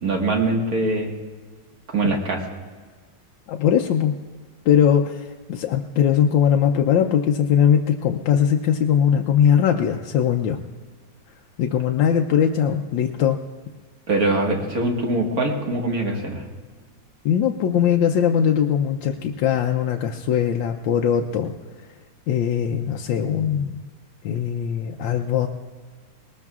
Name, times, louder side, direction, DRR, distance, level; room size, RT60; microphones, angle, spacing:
voice 1, 0.0-1.1 1.9-2.4 14.1-16.4, right 2 dB, 50° right, 1 dB, 2.0 m, -23 dB
voice 2, 3.5-4.1 4.6-10.6 11.6-13.4 17.2-21.5 21.8-21.9 22.3-23.8 24.2-25.5, left 8 dB, 80° left, 3 dB, 1.3 m, -20 dB
21.0 x 19.0 x 2.4 m, 1.5 s
omnidirectional pair, 2.0 m